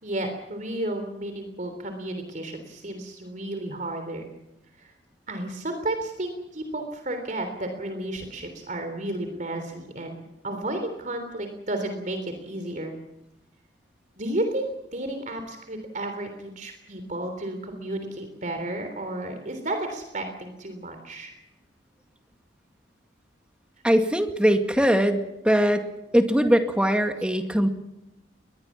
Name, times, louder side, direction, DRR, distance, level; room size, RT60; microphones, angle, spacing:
voice 1, 0.0-4.3 4.8-4.9 5.3-13.0 14.2-21.3 24.0-24.2, right 1 dB, 45° right, 6 dB, 3.4 m, -32 dB
voice 2, 23.8-27.7, equal, 5° right, 5 dB, 2.1 m, -21 dB
22.0 x 20.5 x 7.4 m, 0.89 s
head